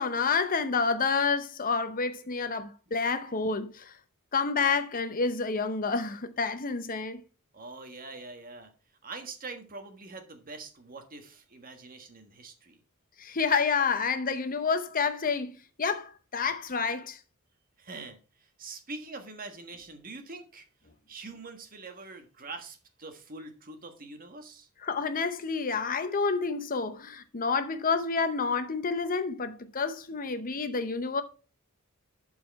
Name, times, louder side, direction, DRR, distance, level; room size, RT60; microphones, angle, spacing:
voice 1, 0.0-3.9 4.3-7.2 13.2-15.5 15.8-17.2 24.8-31.2, left 5 dB, 40° left, 0.8 m, -29 dB
voice 2, 7.5-8.7 9.0-12.8 16.4-16.5 17.8-20.6 21.1-24.7, right 3 dB, 40° right, 1.5 m, -44 dB
11.5 x 4.7 x 4.7 m
head